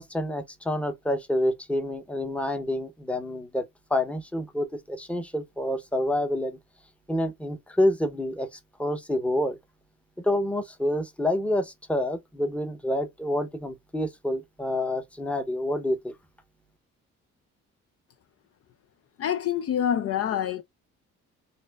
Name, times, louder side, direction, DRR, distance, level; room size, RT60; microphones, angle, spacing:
voice 1, 0.0-6.6 7.1-9.6 10.2-16.1, left 1 dB, 5° left, 0.8 m, -28 dB
voice 2, 19.2-20.6, left 9 dB, 50° left, 0.4 m, -26 dB
4.1 x 2.5 x 2.3 m
cardioid pair, 90°, 30 cm